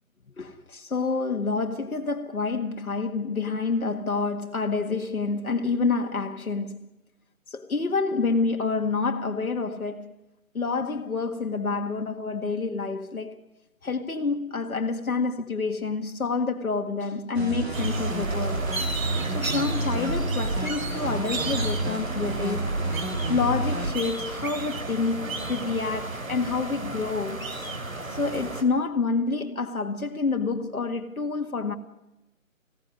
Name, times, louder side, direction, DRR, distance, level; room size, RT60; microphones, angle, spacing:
voice 1, 0.4-6.8 7.5-10.1 10.5-13.4 13.8-18.6 19.3-22.8 23.3-27.5 28.1-31.7, left 4 dB, 90° left, 2.0 m, -28 dB
sound 1, 17.3-23.9, right 2 dB, 50° right, 3.0 m, -29 dB
sound 2, 17.7-28.6, right 2 dB, 75° right, 3.1 m, -34 dB
21.0 x 17.0 x 9.7 m
figure-of-eight pair, 175°, 41 cm